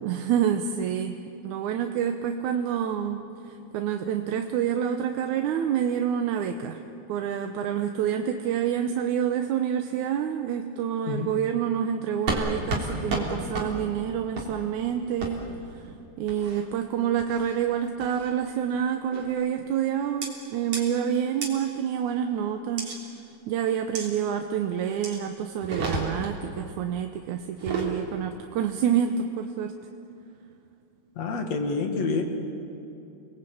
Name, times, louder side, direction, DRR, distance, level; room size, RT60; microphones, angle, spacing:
voice 1, 0.0-6.8 7.1-15.4 15.7-22.9 23.5-29.7, right 9 dB, 75° right, 5 dB, 2.2 m, -28 dB
sound 1, 12.3-12.4 12.7-12.8 13.1-13.2 13.5-13.7 14.3-14.5 15.2-15.3 16.3-16.6 17.2-17.5 18.0-18.3 19.1-19.4 20.2-20.3 20.7-20.8 21.4-21.5 22.8-23.0 23.9-24.1 25.0-25.2 25.6-26.3 27.5-27.9, right 2 dB, 50° right, 4.4 m, -31 dB
voice 2, 31.2-32.2, left 4 dB, 55° left, 5 dB, 3.2 m, -27 dB
29.0 x 20.5 x 8.6 m, 2.7 s
omnidirectional pair, 3.7 m